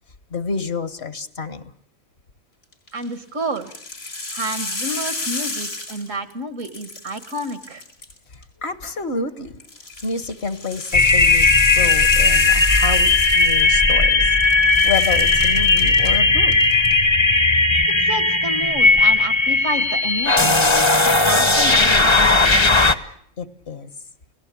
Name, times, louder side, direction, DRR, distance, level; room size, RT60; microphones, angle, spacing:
voice 1, 0.3-1.6 8.6-9.6 10.0-11.5 11.7-16.8 23.4-23.9, left 4 dB, 55° left, 13 dB, 1.6 m, -29 dB
sound 1, 2.7-3.1 3.6-6.3 6.6-8.4 9.6-14.1 14.4-16.1 16.5-16.9, left 2 dB, 80° left, 5.1 m, -31 dB
voice 2, 2.9-3.7 4.3-7.8 18.0-20.8 21.0-22.2, right 1 dB, 70° right, 11 dB, 2.2 m, -30 dB
sound 2, 10.9-22.9, left 3 dB, 25° left, 1.0 m, -16 dB
29.5 x 17.5 x 8.5 m, 0.65 s
omnidirectional pair, 1.4 m